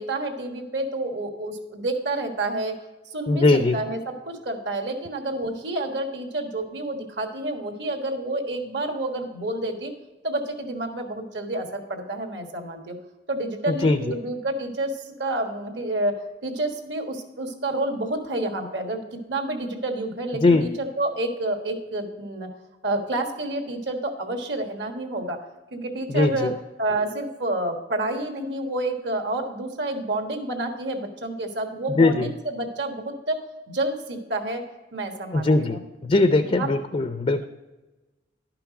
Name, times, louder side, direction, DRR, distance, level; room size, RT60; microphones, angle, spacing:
voice 1, 0.0-2.7 3.1-9.9 10.2-12.9 13.3-16.1 16.4-19.0 19.3-22.5 22.8-25.4 25.7-26.5 26.8-33.4 33.7-34.6 34.9-35.8 36.4-36.7, right 2 dB, 65° right, 4 dB, 1.4 m, -29 dB
voice 2, 3.3-3.8 13.8-14.0 20.4-20.7 26.1-26.5 32.0-32.3 35.3-37.4, left 2 dB, 35° left, 9 dB, 0.4 m, -20 dB
11.5 x 5.8 x 4.9 m, 1.1 s
head